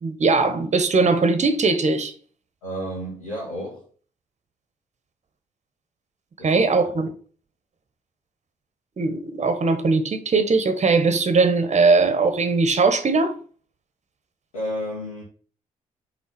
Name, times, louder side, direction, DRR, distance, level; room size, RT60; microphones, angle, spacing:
voice 1, 0.0-2.1 6.4-7.1 9.0-13.3, right 4 dB, 40° right, 1.3 m, -20 dB
voice 2, 2.6-3.8 6.4-6.5 6.9-7.0 14.5-15.2, equal, 85° left, 1.9 m, -31 dB
5.7 x 4.0 x 5.9 m
hypercardioid pair, 40°, 18 cm